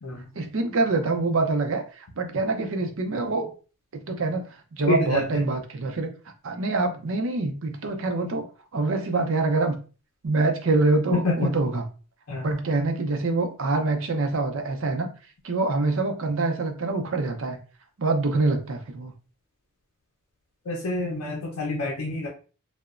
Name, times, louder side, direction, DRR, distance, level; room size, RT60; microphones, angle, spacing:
voice 1, 0.4-3.5 3.9-4.5 4.7-6.1 6.4-8.4 8.7-9.8 10.2-11.8 12.4-15.1 15.4-17.6 18.0-19.1, right 3 dB, 60° right, 5 dB, 0.5 m, -25 dB
voice 2, 4.9-5.4 11.1-11.6 12.3-12.6 20.6-22.3, left 2 dB, 75° left, -1 dB, 0.5 m, -27 dB
2.9 x 2.1 x 2.3 m, 0.36 s
head